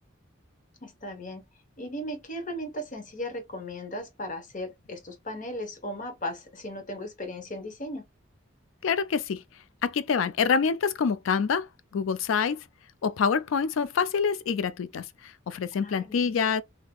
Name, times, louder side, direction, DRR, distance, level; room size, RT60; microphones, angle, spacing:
voice 1, 0.8-1.4 1.8-8.0 15.8-16.3, left 1 dB, 40° left, 0.9 m, -37 dB
voice 2, 8.8-9.4 9.8-11.7 11.9-12.6 13.0-16.6, left 6 dB, 85° left, 0.4 m, -26 dB
3.5 x 2.8 x 2.2 m
head